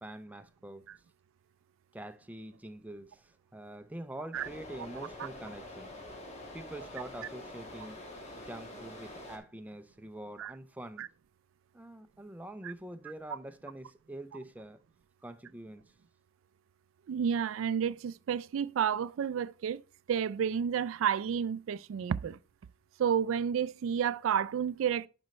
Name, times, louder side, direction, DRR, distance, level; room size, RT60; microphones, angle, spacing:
voice 1, 0.0-0.9 1.9-5.9 6.5-8.0 8.3-11.1 11.7-14.8 15.2-15.9, right 1 dB, 10° right, 0.5 m, -45 dB
sound 1, 4.3-9.4, left 1 dB, 35° left, 1.6 m, -46 dB
voice 2, 17.1-19.8 20.1-22.4 23.0-25.1, right 8 dB, 85° right, 0.3 m, -30 dB
10.5 x 5.1 x 3.2 m
head